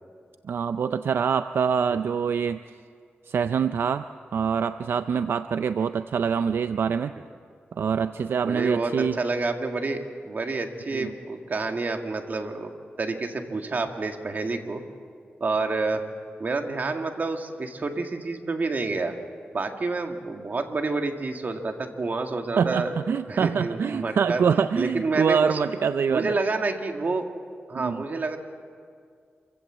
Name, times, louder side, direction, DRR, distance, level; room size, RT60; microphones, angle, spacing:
voice 1, 0.5-2.6 3.3-4.0 4.3-7.1 7.8-9.2 10.9-11.1 22.6-26.3 27.8-28.0, right 6 dB, 75° right, 11 dB, 0.5 m, -25 dB
voice 2, 8.4-12.7 13.0-14.8 15.4-16.1 16.4-19.2 19.5-23.0 23.3-24.4 24.8-25.6 26.1-27.2 27.7-28.4, right 3 dB, 50° right, 5 dB, 1.9 m, -28 dB
26.5 x 16.0 x 7.5 m, 2.2 s
wide cardioid pair, 95°, 4 cm